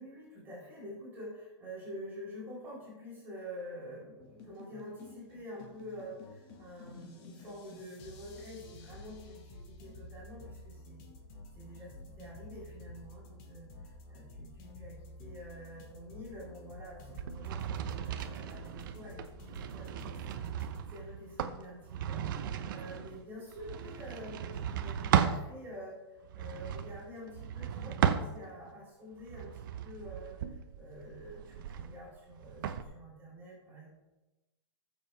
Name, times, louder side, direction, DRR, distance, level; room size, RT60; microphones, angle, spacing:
voice 1, 0.0-11.0 11.5-20.5 20.9-33.9, equal, 15° right, -7 dB, 4.7 m, -47 dB
sound 1, 4.2-20.8, left 2 dB, 30° left, 1.7 m, -51 dB
sound 2, 17.1-25.4 26.2-28.7 29.2-32.8, right 9 dB, 50° right, 0.9 m, -35 dB
20.0 x 7.2 x 3.5 m, 1.0 s
hypercardioid pair, 160°, 14 cm